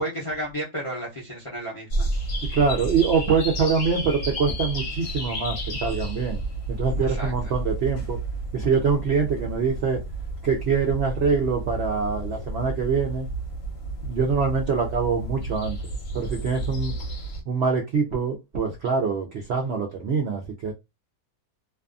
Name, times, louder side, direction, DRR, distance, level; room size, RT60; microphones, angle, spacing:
voice 1, 0.0-2.1 7.0-7.5, right 1 dB, 30° left, 0.6 m, -32 dB
sound 1, 1.9-17.4, right 2 dB, 65° left, 1.1 m, -31 dB
voice 2, 2.5-6.4 6.7-8.2 8.5-10.0 10.4-13.3 14.0-15.8 16.1-16.9 17.5-20.7, right 5 dB, 70° right, 0.6 m, -24 dB
2.6 x 2.3 x 2.4 m
omnidirectional pair, 1.6 m